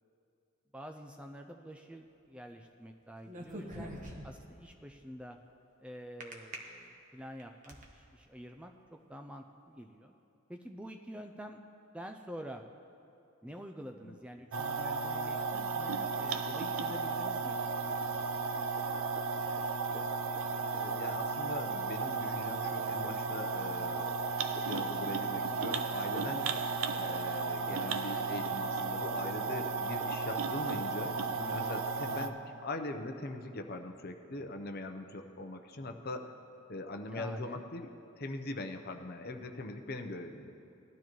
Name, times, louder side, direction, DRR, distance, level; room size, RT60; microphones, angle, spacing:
voice 1, 0.7-3.9 4.2-5.4 5.8-10.1 10.5-11.6 11.9-12.6 13.4-18.7 27.9-28.0 31.3-31.7 37.1-37.6, equal, 5° right, 4 dB, 0.4 m, -48 dB
sound 1, 3.3-4.5 6.2-6.6 7.2-7.8, right 1 dB, 35° right, 1.2 m, -43 dB
sound 2, 14.5-32.3, right 4 dB, 65° right, 0.6 m, -34 dB
sound 3, 18.8-19.3 19.6-21.2 21.5-24.3 24.6-25.5 25.8-27.4 27.7-28.6 28.9-30.5 30.8-31.0, left 1 dB, 10° left, 1.1 m, -54 dB
voice 2, 20.7-24.1 24.7-26.4 27.0-31.1 31.5-36.3 36.7-37.9 38.2-40.5, left 2 dB, 45° left, 6 dB, 0.8 m, -41 dB
19.5 x 12.0 x 3.1 m, 2.7 s
head